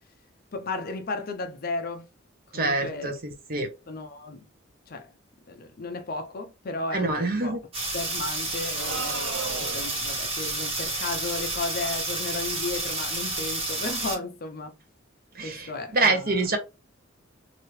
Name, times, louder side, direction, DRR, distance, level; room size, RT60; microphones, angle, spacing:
voice 1, 0.5-2.1 2.5-3.1 3.5-4.5 4.9-5.1 5.5-7.6 7.9-9.2 9.6-14.8 15.4-16.5, left 3 dB, 45° left, 0.6 m, -34 dB
voice 2, 2.5-3.7 6.9-7.6 15.3-16.6, right 3 dB, 50° right, 0.9 m, -26 dB
sound 1, 7.7-14.2, right 2 dB, 30° right, 1.5 m, -30 dB
sound 2, 8.8-10.1, right 4 dB, 85° right, 0.6 m, -35 dB
3.0 x 2.7 x 3.1 m
head